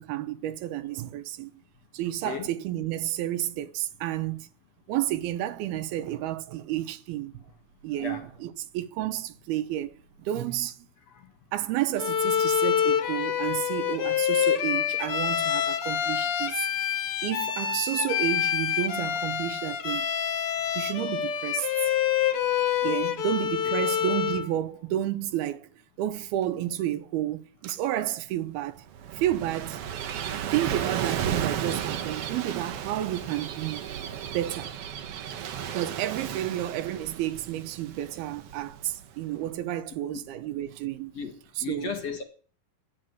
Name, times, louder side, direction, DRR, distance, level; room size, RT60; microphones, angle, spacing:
voice 1, 0.0-1.5 1.9-4.5 4.9-7.4 7.8-9.9 10.2-10.8 11.5-16.7 17.2-20.1 20.8-21.7 22.8-25.7 26.0-28.8 29.1-29.8 30.5-33.9 34.3-34.7 35.7-41.1 41.6-41.9, right 13 dB, 85° right, 2.9 m, -31 dB
Bowed string instrument, 12.0-24.5, left 9 dB, 80° left, 1.2 m, -27 dB
Gull seagull / Waves surf, 28.7-39.3, right 9 dB, 70° right, 1.4 m, -34 dB
voice 2, 41.6-42.2, left 6 dB, 50° left, 2.3 m, -35 dB
12.5 x 8.9 x 7.9 m
omnidirectional pair, 4.4 m